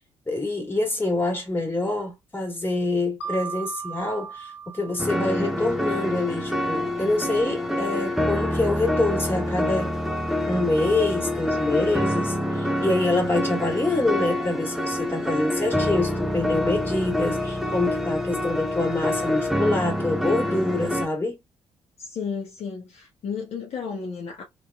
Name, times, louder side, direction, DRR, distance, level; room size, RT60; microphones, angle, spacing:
voice 1, 0.3-9.9 10.5-21.4, left 2 dB, 15° left, 1.7 m, -26 dB
Mallet percussion, 3.2-6.0, right 6 dB, 80° left, 0.5 m, -37 dB
sound 1, 5.0-21.1, left 1 dB, ahead, 0.7 m, -26 dB
voice 2, 22.0-24.4, left 6 dB, 45° left, 0.9 m, -33 dB
3.1 x 2.8 x 2.3 m
figure-of-eight pair, 40°, 14 cm